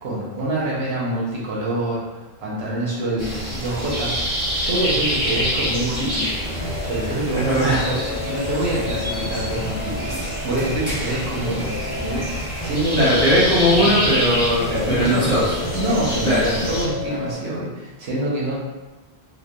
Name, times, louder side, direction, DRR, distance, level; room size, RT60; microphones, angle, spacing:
voice 1, 0.0-4.2 4.6-6.3 6.9-10.1 10.4-13.3 14.7-15.4 15.7-18.6, right 1 dB, 85° right, -6 dB, 1.0 m, -26 dB
sound 1, 3.2-16.8, equal, 25° right, 1.1 m, -27 dB
sound 2, 6.4-17.3, left 1 dB, 80° left, 1.0 m, -31 dB
voice 2, 7.4-7.8 12.9-15.5 16.2-16.4, equal, 5° left, -11 dB, 1.1 m, -19 dB
3.2 x 2.2 x 2.2 m, 1.2 s
omnidirectional pair, 1.1 m